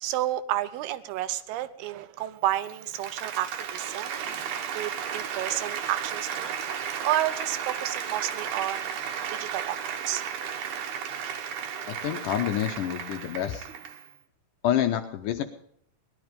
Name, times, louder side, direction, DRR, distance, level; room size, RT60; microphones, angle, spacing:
voice 1, 0.0-4.2 4.7-6.6 7.0-8.9 9.3-10.2, right 13 dB, 90° right, 12 dB, 2.8 m, -31 dB
Applause, 2.5-14.1, right 8 dB, 65° right, 2.3 m, -34 dB
voice 2, 11.9-13.7 14.6-15.4, left 11 dB, 75° left, 6 dB, 2.0 m, -28 dB
18.5 x 11.5 x 5.1 m, 0.69 s
omnidirectional pair, 4.4 m